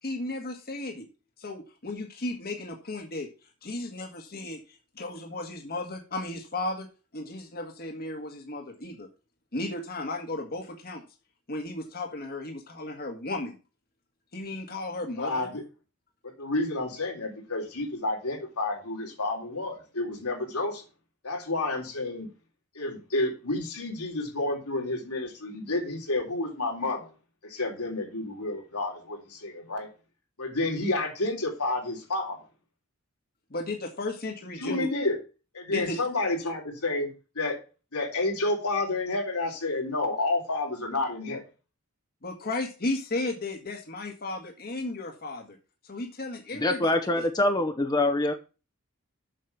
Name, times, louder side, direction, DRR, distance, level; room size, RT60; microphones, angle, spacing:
voice 1, 0.0-1.1 1.4-3.3 3.6-6.9 7.1-9.1 9.5-11.0 11.5-13.6 14.3-15.5 33.5-34.9 35.7-36.0 42.2-45.6 45.8-47.3, left 2 dB, 45° left, 1.6 m, -34 dB
voice 2, 15.2-15.6 16.2-20.8 21.2-22.3 22.8-27.1 27.4-29.9 30.4-32.4 34.6-35.2 35.5-37.1 37.4-37.6 37.9-41.4, left 2 dB, 80° left, 3.5 m, -30 dB
voice 3, 46.5-48.3, left 2 dB, 20° left, 0.9 m, -24 dB
7.6 x 6.6 x 6.8 m
head